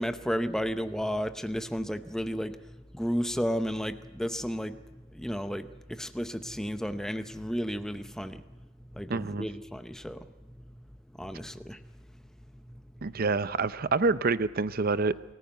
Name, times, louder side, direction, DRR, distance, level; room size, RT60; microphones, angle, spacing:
voice 1, 0.0-2.6 2.9-4.8 5.1-8.4 8.9-10.3 11.2-11.8, equal, 5° left, 10 dB, 0.7 m, -32 dB
voice 2, 9.1-9.5 13.0-15.2, right 3 dB, 45° right, 15 dB, 0.6 m, -27 dB
23.0 x 15.0 x 9.3 m, 1.2 s
head